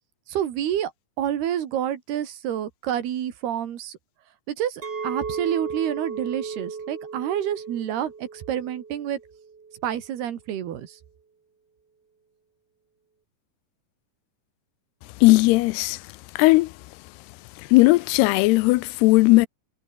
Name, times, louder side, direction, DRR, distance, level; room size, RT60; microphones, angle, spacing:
voice 1, 0.3-0.9 1.2-4.0 4.5-9.2 9.8-11.0, right 10 dB, 75° right, 4.1 m, -28 dB
Chink clink, 4.8-10.0, right 5 dB, 30° right, 2.4 m, -35 dB
voice 2, 15.2-16.0 16.4-16.7 17.7-19.5, left 21 dB, 90° left, 2.6 m, -17 dB
omnidirectional pair, 4.7 m